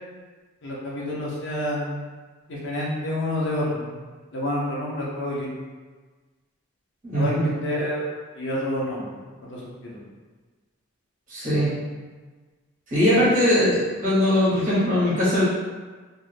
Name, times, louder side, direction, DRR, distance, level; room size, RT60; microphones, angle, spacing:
voice 1, 0.6-2.0 2.5-4.0 4.3-5.5 7.1-8.0 8.4-9.2 9.5-10.0, left 1 dB, 55° left, -5 dB, 0.6 m, -28 dB
voice 2, 7.0-7.5 11.3-11.8 12.9-15.4, equal, 35° right, -10 dB, 1.3 m, -20 dB
2.6 x 2.5 x 3.3 m, 1.4 s
head